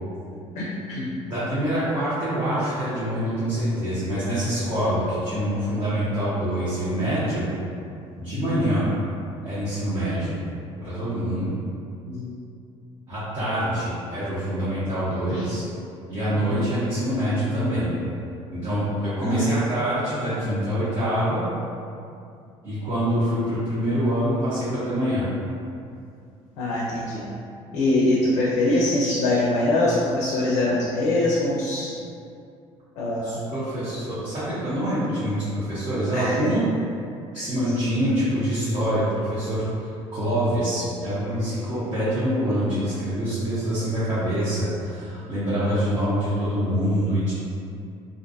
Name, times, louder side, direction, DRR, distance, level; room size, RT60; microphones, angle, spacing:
voice 1, 0.6-1.1 8.3-8.6 12.0-12.3 15.3-15.5 16.5-16.6 19.2-19.6 26.6-27.2 27.7-31.9 33.0-33.4 36.1-36.5 37.3-37.4, left 2 dB, 85° left, -5 dB, 0.4 m, -23 dB
voice 2, 1.2-7.5 8.1-8.9 9.4-10.4 10.8-11.5 13.1-15.6 16.1-17.9 18.5-21.4 22.6-25.2 33.2-36.6 37.3-39.6 40.1-47.3, equal, 35° right, -13 dB, 0.9 m, -25 dB
2.5 x 2.2 x 2.5 m, 2.5 s
cardioid pair, 120°, 12 cm